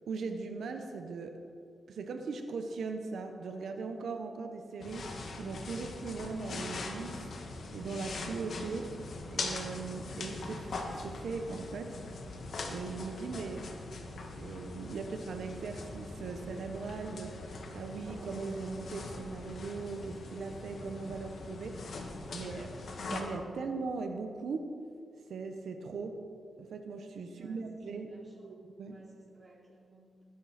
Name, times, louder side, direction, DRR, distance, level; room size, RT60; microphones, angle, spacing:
voice 1, 0.1-1.4 1.9-7.2 7.7-9.0 9.3-10.8 11.0-12.0 12.7-13.7 14.4-21.8 22.3-22.7 23.1-24.7 25.3-26.2 26.6-28.1 28.8-29.0, right 4 dB, 80° right, 5 dB, 1.2 m, -39 dB
sound 1, 4.8-23.2, left 3 dB, 65° left, 1.9 m, -42 dB
Drum, 18.1-20.8, right 1 dB, 60° right, 3.5 m, -56 dB
voice 2, 27.3-27.7 27.9-30.2, right 2 dB, 30° right, -2 dB, 3.8 m, -59 dB
20.0 x 11.0 x 4.4 m, 2.3 s
cardioid pair, 90°, 0 cm